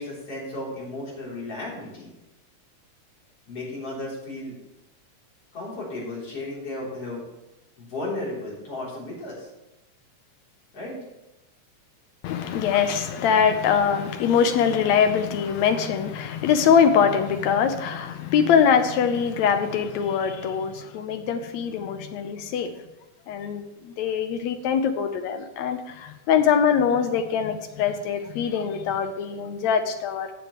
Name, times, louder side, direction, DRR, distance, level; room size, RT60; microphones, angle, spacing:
voice 1, 0.0-2.1 3.5-4.6 5.5-7.2 7.8-9.5 10.7-11.0, left 2 dB, 50° left, -6 dB, 4.7 m, -34 dB
voice 2, 12.2-22.7 23.3-30.3, left 7 dB, 75° left, 8 dB, 2.0 m, -23 dB
14.5 x 8.9 x 3.2 m, 0.95 s
omnidirectional pair, 3.4 m